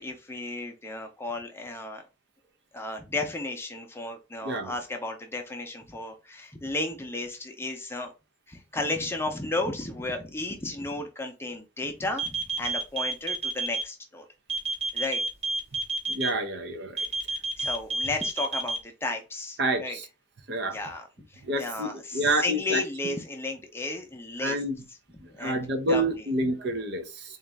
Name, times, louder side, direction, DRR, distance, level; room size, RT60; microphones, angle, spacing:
voice 1, 0.0-2.0 2.7-8.1 8.5-14.2 14.9-15.2 17.6-20.0 20.6-24.6 25.3-26.3, left 2 dB, 10° left, 0.6 m, -34 dB
sound 1, 12.2-13.8 14.5-16.3 17.0-18.8, right 3 dB, 30° right, 0.8 m, -29 dB
voice 2, 16.1-17.0 19.6-20.0 20.5-20.8 21.4-22.8 24.4-24.7 25.4-27.4, right 1 dB, 55° right, 0.6 m, -28 dB
3.9 x 2.5 x 3.3 m
head